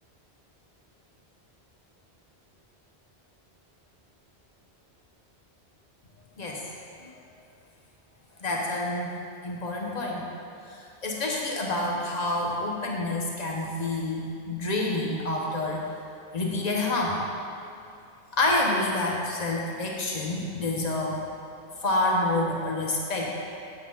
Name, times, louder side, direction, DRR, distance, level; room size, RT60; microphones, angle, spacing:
voice 1, 8.4-9.1 9.4-10.2 10.6-15.8 16.3-17.2 18.3-21.2 21.8-23.3, left 2 dB, 40° left, -1 dB, 1.2 m, -28 dB
8.7 x 7.5 x 3.9 m, 2.6 s
omnidirectional pair, 1.1 m